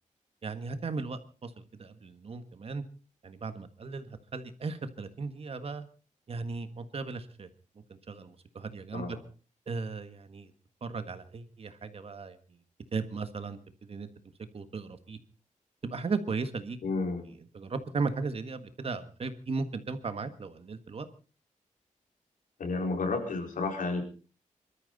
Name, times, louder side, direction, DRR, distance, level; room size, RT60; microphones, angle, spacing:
voice 1, 0.4-2.8 3.2-5.8 6.3-7.5 8.1-9.2 9.7-10.5 10.8-12.4 12.9-14.1 14.5-15.2 15.8-16.8 17.5-21.1, right 4 dB, 45° right, 10 dB, 1.6 m, -36 dB
voice 2, 16.8-17.3 22.6-24.0, left 3 dB, 85° left, 3 dB, 4.7 m, -31 dB
25.5 x 13.5 x 4.1 m, 0.36 s
wide cardioid pair, 155°, 13 cm